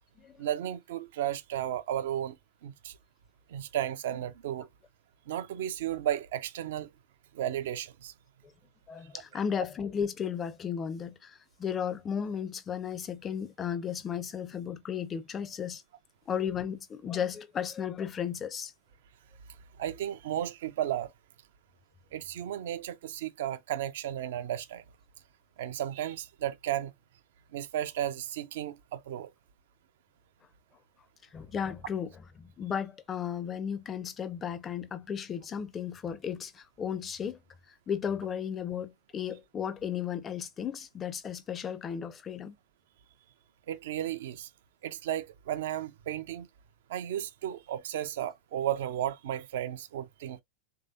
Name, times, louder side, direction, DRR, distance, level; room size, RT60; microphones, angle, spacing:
voice 1, 0.4-2.4 2.6-2.9 3.5-4.7 5.3-6.9 7.3-8.1 19.8-21.1 22.1-24.8 25.6-26.9 27.5-29.3 43.7-44.5 44.8-46.5 46.9-50.4, right 11 dB, 55° right, 0.4 m, -34 dB
voice 2, 8.9-15.8 16.3-18.7 31.3-32.1 32.4-37.4 37.9-42.5, left 8 dB, 25° left, 0.5 m, -34 dB
3.2 x 2.7 x 2.5 m
figure-of-eight pair, 90°, 0 cm